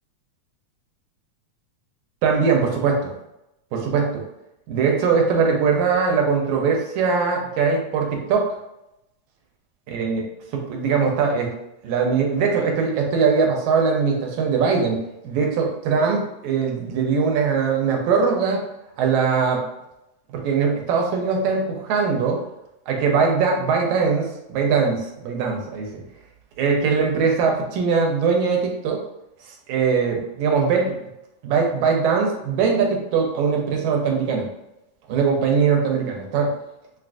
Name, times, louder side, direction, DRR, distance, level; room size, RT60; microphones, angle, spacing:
voice 1, 2.2-3.1 3.7-4.2 4.7-8.5 9.9-10.2 10.5-11.5 11.8-18.6 19.0-19.7 20.3-22.4 22.9-26.0 26.6-29.0 29.7-31.0 31.4-34.5 35.1-36.5, right 5 dB, 80° right, 1 dB, 1.9 m, -21 dB
6.0 x 2.3 x 2.4 m, 0.88 s
omnidirectional pair, 3.4 m